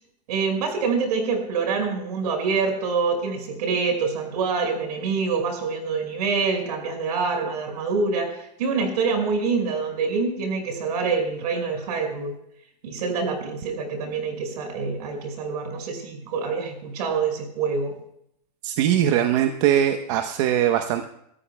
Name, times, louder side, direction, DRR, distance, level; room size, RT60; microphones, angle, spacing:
voice 1, 0.3-12.3 12.8-18.0, right 4 dB, 70° right, 4 dB, 5.6 m, -26 dB
voice 2, 18.6-21.0, right 10 dB, 45° right, 6 dB, 1.0 m, -21 dB
26.5 x 13.5 x 2.2 m, 0.74 s
supercardioid pair, 160°, 21 cm